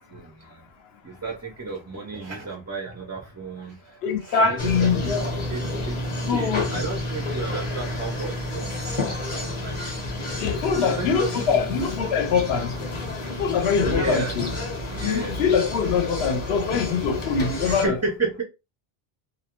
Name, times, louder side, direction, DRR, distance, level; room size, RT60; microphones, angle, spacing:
voice 1, 0.1-0.7 1.0-4.9 5.5-6.0 6.3-8.8 9.1-9.8 10.7-11.7 13.9-14.4 14.9-15.3 17.6-18.4, right 3 dB, 25° right, 0.3 m, -32 dB
voice 2, 4.0-5.1 6.3-6.7 10.4-12.7 13.4-14.5 15.0-17.9, left 6 dB, 85° left, 0.8 m, -23 dB
sound 1, 4.6-17.9, left 2 dB, 35° left, 0.8 m, -30 dB
2.3 x 2.1 x 2.9 m
omnidirectional pair, 1.0 m